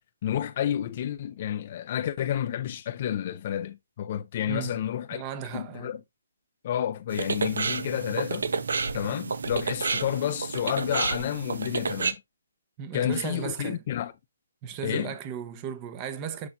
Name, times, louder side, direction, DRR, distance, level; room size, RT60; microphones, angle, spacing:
voice 1, 0.2-5.2 5.5-6.0 6.6-8.5 8.9-12.2 12.9-14.1 14.8-15.1, left 10 dB, 40° left, 0.5 m, -30 dB
voice 2, 5.1-5.9 12.8-13.8 14.6-16.5, right 7 dB, 25° right, 0.9 m, -35 dB
sound 1, 7.1-12.1, right 4 dB, 75° right, 1.0 m, -30 dB
7.9 x 5.7 x 2.6 m
hypercardioid pair, 160°, 0 cm